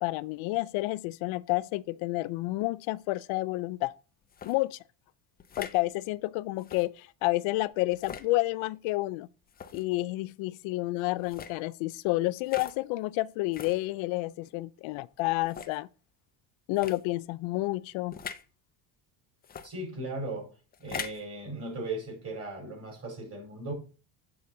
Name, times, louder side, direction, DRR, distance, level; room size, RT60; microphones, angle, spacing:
voice 1, 0.0-3.9 4.4-4.8 5.6-9.3 9.7-15.9 16.7-18.2, left 20 dB, 75° left, 0.5 m, -30 dB
sound 1, 4.3-4.6 5.4-5.8 6.6-6.9 7.9-8.3 9.5-9.8 11.2-11.6 12.5-12.8 13.5-13.8 14.5-14.6 15.4-15.8 16.8-17.0 18.1-18.4 19.4-19.7 20.7-21.2, left 7 dB, 20° left, 0.4 m, -41 dB
voice 2, 19.6-20.5 20.8-23.7, right 2 dB, 30° right, 4.7 m, -37 dB
8.5 x 3.9 x 6.5 m
cardioid pair, 145°, 48 cm